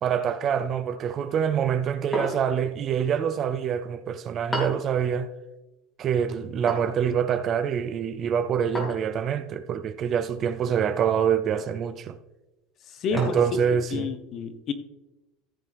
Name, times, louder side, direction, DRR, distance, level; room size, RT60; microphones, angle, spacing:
voice 1, 0.0-5.3 6.0-12.2 13.1-14.1, right 8 dB, 35° right, 0.5 m, -26 dB
sound 1, 2.1-2.7 4.5-4.9 6.7-7.0 8.7-9.1 10.6-11.0 11.6-11.8 13.2-13.6, equal, 10° left, 2.9 m, -33 dB
voice 2, 13.0-13.4 13.7-14.7, left 5 dB, 35° left, 1.0 m, -30 dB
14.5 x 6.8 x 3.4 m
cardioid pair, 160°, 0 cm